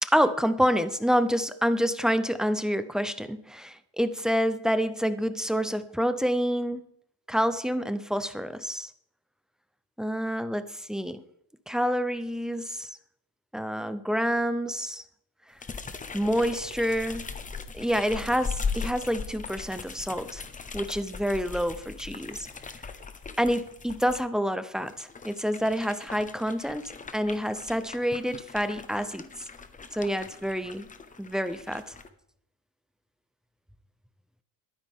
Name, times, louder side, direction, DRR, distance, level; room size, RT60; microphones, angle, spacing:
voice 1, 0.0-6.8 7.3-8.9 10.0-11.2 11.7-12.9 13.5-15.0 16.1-17.3 17.7-20.4 20.7-22.5 23.4-29.3 29.9-30.9 31.2-31.9, equal, ahead, 11 dB, 0.6 m, -28 dB
sound 1, 15.6-24.2 24.8-32.1, left 5 dB, 20° left, 0.9 m, -39 dB
21.5 x 9.6 x 3.6 m, 0.71 s
cardioid pair, 145°, 42 cm